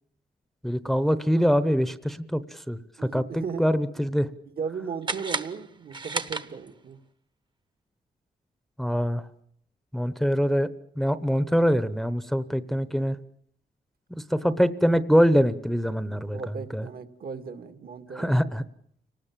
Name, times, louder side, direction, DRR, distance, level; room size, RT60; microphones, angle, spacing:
voice 1, 0.6-2.8 3.1-4.3 8.8-9.2 9.9-10.7 11.0-13.2 14.1-16.4 16.7-16.8 18.2-18.6, equal, ahead, 12 dB, 0.9 m, -24 dB
voice 2, 3.0-3.7 4.6-7.0 16.1-18.4, right 6 dB, 65° right, 8 dB, 2.0 m, -36 dB
sound 1, 5.0-7.0, right 3 dB, 30° right, 1.1 m, -33 dB
29.5 x 19.5 x 7.4 m, 0.69 s
wide cardioid pair, 135°, 17 cm